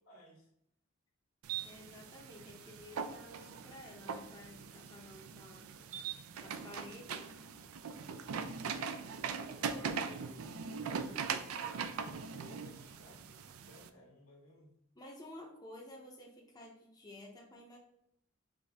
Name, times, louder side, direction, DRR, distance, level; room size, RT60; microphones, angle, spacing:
voice 1, 0.0-0.5 6.6-7.0 8.0-8.1 9.3-14.7, left 1 dB, 75° left, 0 dB, 1.4 m, -58 dB
sound 1, 1.4-13.9, right 6 dB, 80° right, 0.4 m, -41 dB
voice 2, 1.6-5.7 6.4-7.3 15.0-17.8, left 1 dB, 20° left, -1 dB, 0.6 m, -52 dB
5.2 x 2.7 x 3.4 m, 0.77 s
head